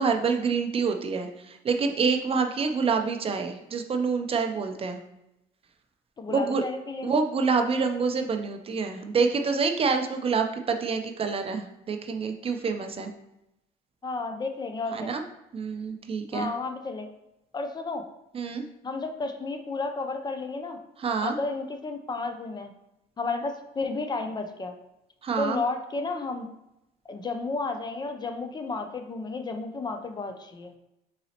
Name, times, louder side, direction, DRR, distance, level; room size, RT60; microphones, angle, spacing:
voice 1, 0.0-5.0 6.3-6.6 7.0-13.1 14.9-15.2 15.5-16.5 18.3-18.6 21.0-21.4 25.2-25.6, right 5 dB, 35° right, 6 dB, 0.4 m, -27 dB
voice 2, 6.2-7.2 14.0-15.1 16.3-17.1 17.5-18.0 18.8-20.8 21.2-22.7 23.2-24.7 25.4-26.5 27.1-30.7, left 3 dB, 25° left, 6 dB, 0.4 m, -32 dB
4.0 x 3.9 x 2.8 m, 0.88 s
cardioid pair, 110°, 17 cm